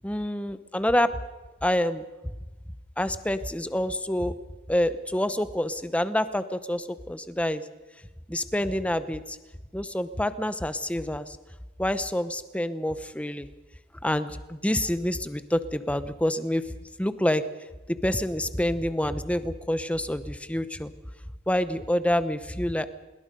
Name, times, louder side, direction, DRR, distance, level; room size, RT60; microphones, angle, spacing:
voice 1, 0.0-1.1 1.6-2.0 3.0-4.3 4.7-7.6 8.3-9.4 9.7-11.4 11.8-13.5 14.0-16.6 17.0-17.4 17.9-20.9 21.5-22.9, left 1 dB, 5° left, 12 dB, 0.9 m, -27 dB
24.5 x 21.5 x 5.4 m, 1.2 s
head